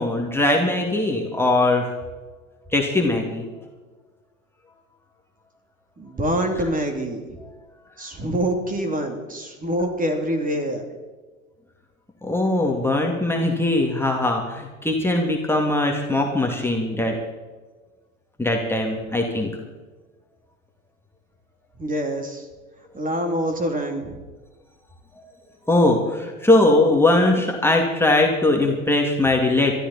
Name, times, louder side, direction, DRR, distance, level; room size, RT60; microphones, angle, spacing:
voice 1, 0.0-1.9 2.7-3.5 12.2-17.2 18.4-19.5 25.2-25.3 25.7-29.7, left 2 dB, 5° left, 0 dB, 2.3 m, -20 dB
voice 2, 6.0-7.4 8.0-10.8 21.8-22.5 22.9-24.2, right 1 dB, 20° right, 5 dB, 2.9 m, -25 dB
21.0 x 13.5 x 4.2 m, 1.3 s
hypercardioid pair, 95°, 41 cm